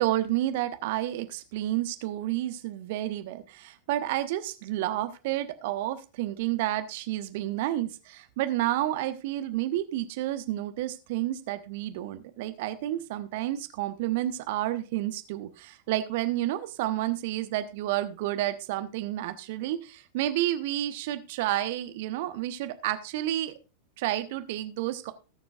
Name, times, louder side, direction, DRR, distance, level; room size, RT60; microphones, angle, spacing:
voice 1, 0.0-23.6 24.0-25.1, right 14 dB, 50° right, 10 dB, 1.0 m, -30 dB
19.0 x 7.3 x 2.4 m, 0.31 s
figure-of-eight pair, 90°, 0 cm